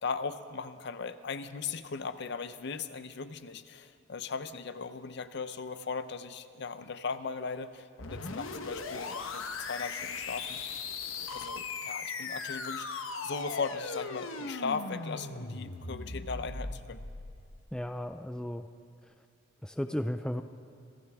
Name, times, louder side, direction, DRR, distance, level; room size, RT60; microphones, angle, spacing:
voice 1, 0.0-10.9 11.3-17.0, left 5 dB, 55° left, 12 dB, 0.6 m, -38 dB
sound 1, 8.0-17.7, left 4 dB, 90° left, 1.1 m, -38 dB
voice 2, 17.7-18.7 19.6-20.4, equal, 5° left, 8 dB, 0.3 m, -34 dB
26.0 x 15.0 x 3.5 m, 2.5 s
head